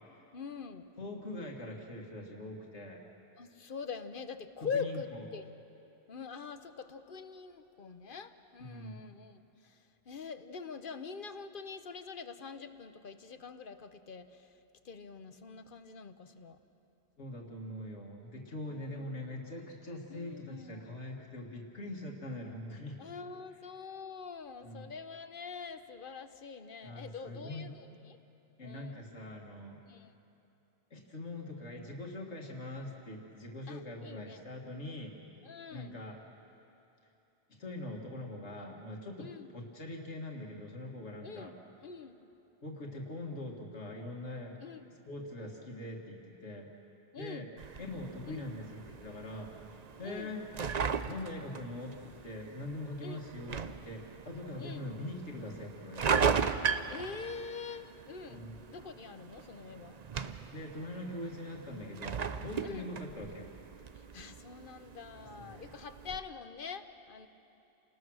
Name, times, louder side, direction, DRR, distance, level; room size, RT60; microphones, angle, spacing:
voice 1, 0.3-0.9 3.4-5.5 6.1-14.5 14.8-16.6 18.7-19.2 20.1-20.9 23.0-28.2 28.6-29.0 29.9-30.1 33.7-34.4 35.4-36.0 39.2-39.5 41.2-42.2 44.6-44.9 47.1-47.5 48.3-48.5 50.0-50.3 53.0-53.2 54.6-54.9 56.9-60.0 62.6-62.9 63.9-67.3, left 5 dB, 50° left, 10 dB, 1.0 m, -44 dB
voice 2, 1.0-3.0 4.7-5.0 8.6-9.0 17.2-23.0 24.6-24.8 26.8-27.7 28.6-29.8 30.9-35.1 35.7-36.2 37.6-39.3 39.5-41.5 42.6-44.6 45.1-46.7 47.2-47.5 47.8-49.5 50.0-50.4 51.0-56.4 58.3-58.6 60.5-63.5 65.4-65.6, left 1 dB, 80° left, 0 dB, 2.2 m, -43 dB
sound 1, 47.6-66.2, right 6 dB, 45° right, 0.7 m, -38 dB
29.0 x 20.0 x 6.3 m, 2.8 s
omnidirectional pair, 1.2 m